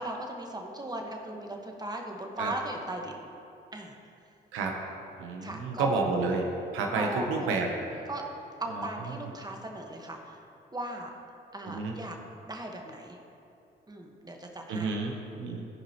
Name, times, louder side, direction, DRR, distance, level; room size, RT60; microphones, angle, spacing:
voice 1, 0.0-3.2 3.7-4.0 5.4-6.0 6.8-7.5 8.1-8.2 8.6-10.4 10.7-11.1 11.5-12.2 12.5-13.2 13.9-14.9, right 1 dB, 20° right, 2 dB, 1.2 m, -37 dB
voice 2, 5.2-6.4 6.7-7.7 8.0-8.1 8.7-9.2 11.6-11.9 14.7-15.7, right 4 dB, 90° right, 2 dB, 0.8 m, -30 dB
13.5 x 5.2 x 2.9 m, 2.6 s
supercardioid pair, 50°, 20 cm